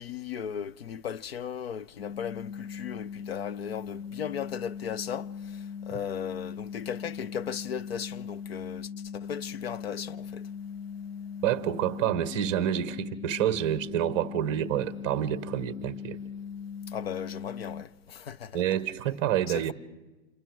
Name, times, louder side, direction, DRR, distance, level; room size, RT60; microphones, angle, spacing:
voice 1, 0.0-10.5 16.9-18.6 19.5-19.7, left 8 dB, 50° left, 0.7 m, -37 dB
sound 1, 2.0-17.8, left 7 dB, 80° left, 1.0 m, -40 dB
voice 2, 11.4-16.2 18.5-19.7, right 11 dB, 20° right, 1.0 m, -28 dB
27.5 x 23.0 x 4.6 m
hypercardioid pair, 160°, 40 cm